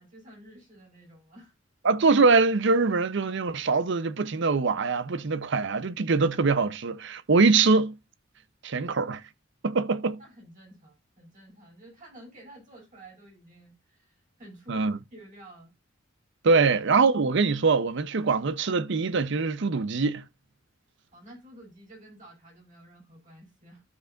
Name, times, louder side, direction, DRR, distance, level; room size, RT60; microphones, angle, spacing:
voice 1, 0.0-1.5 10.2-15.7 21.1-23.8, right 1 dB, 40° right, 6.3 m, -51 dB
voice 2, 1.8-7.9 8.6-9.2 9.6-10.2 14.7-15.0 16.4-20.2, right 4 dB, 65° right, 0.7 m, -23 dB
13.5 x 5.1 x 2.5 m
head